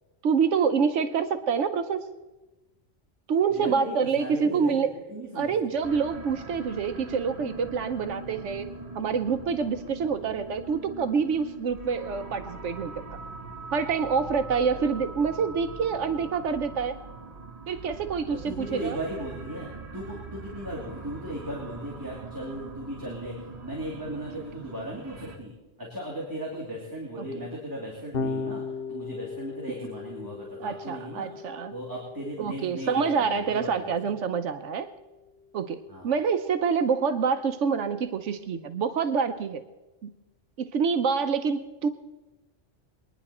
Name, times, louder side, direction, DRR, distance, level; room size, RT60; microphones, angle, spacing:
voice 1, 0.2-2.0 3.3-4.9 5.4-8.7 8.9-12.9 13.7-16.9 17.7-19.0 27.2-27.3 30.6-31.7 32.4-34.9 35.5-35.8 36.0-39.6 40.0-40.1 40.6-41.9, right 6 dB, 80° right, 9 dB, 1.1 m, -26 dB
voice 2, 3.5-5.8 14.7-14.8 18.3-25.5 25.8-28.6 28.9-31.3 31.7-33.9 35.9-36.1, right 1 dB, 15° right, -5 dB, 2.8 m, -37 dB
sound 1, 5.8-25.4, right 3 dB, 35° right, 1.3 m, -42 dB
Electric guitar / Bass guitar, 28.1-34.5, left 4 dB, 55° left, 1.2 m, -37 dB
23.0 x 10.0 x 4.3 m, 1.1 s
omnidirectional pair, 1.2 m